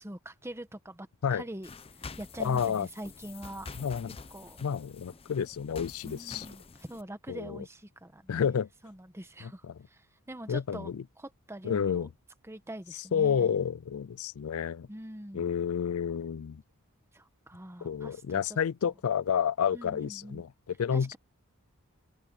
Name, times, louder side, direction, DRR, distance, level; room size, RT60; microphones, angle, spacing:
voice 1, 0.0-1.7 2.2-3.7 4.3-4.6 6.0-8.6 8.8-9.6 9.9-10.0 10.3-12.1 12.4-13.6 14.9-15.5 17.1-18.6 18.8-18.9 19.7-20.4 20.9-21.2, right 1 dB, 10° right, 1.1 m, -44 dB
sound 1, 1.6-7.0, left 4 dB, 25° left, 0.6 m, -47 dB
voice 2, 2.4-2.9 3.8-4.2 4.6-6.5 7.3-7.6 8.3-8.7 9.4-9.8 10.5-11.0 11.6-12.1 13.1-14.9 15.3-16.6 17.8-20.5 20.8-21.2, left 7 dB, 70° left, 0.4 m, -30 dB
open air
head